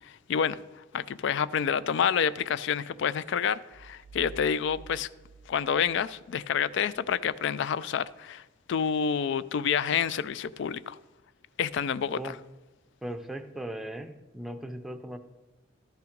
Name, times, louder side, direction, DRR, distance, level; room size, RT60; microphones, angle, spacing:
voice 1, 0.0-5.1 5.5-8.4 8.7-11.0 11.6-12.4, left 7 dB, 65° left, 0.3 m, -28 dB
sound 1, 3.7-6.5, right 4 dB, 90° right, 0.6 m, -50 dB
voice 2, 13.0-15.2, right 1 dB, ahead, 0.6 m, -38 dB
13.0 x 5.7 x 5.1 m
head